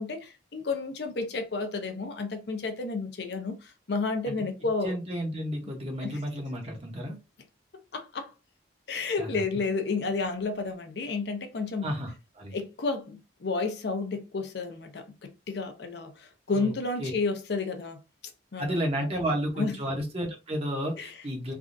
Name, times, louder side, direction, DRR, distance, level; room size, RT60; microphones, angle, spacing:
voice 1, 0.0-5.0 6.0-6.2 7.9-8.3 8.9-11.9 12.5-18.0 18.5-18.8 19.6-19.8 21.0-21.1, left 3 dB, 60° left, 0.6 m, -31 dB
voice 2, 4.8-7.2 9.2-9.4 11.8-12.6 16.5-16.7 17.0-17.1 18.6-21.5, equal, 30° right, 0.9 m, -32 dB
3.4 x 2.4 x 2.5 m
head